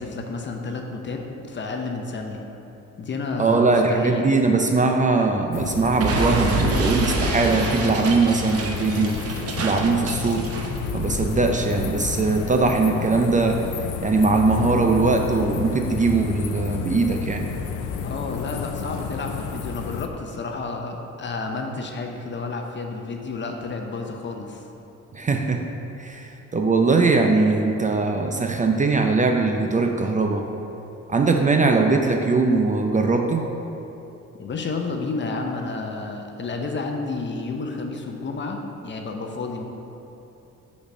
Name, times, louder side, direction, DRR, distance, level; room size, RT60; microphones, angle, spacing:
voice 1, 0.0-2.4 3.0-4.3 18.0-24.6 34.4-39.6, left 3 dB, 40° left, 3 dB, 0.7 m, -31 dB
voice 2, 3.4-9.2 9.5-10.5 10.9-13.6 14.0-17.5 25.1-25.6 26.0-30.4 31.1-33.4, right 3 dB, 25° right, 3 dB, 0.5 m, -21 dB
sound 1, 5.5-20.1, left 6 dB, 85° left, 0.5 m, -31 dB
Explosion, 6.0-10.8, right 2 dB, 50° right, 0.8 m, -27 dB
5.1 x 4.2 x 6.0 m, 2.9 s
cardioid pair, 90°, 30 cm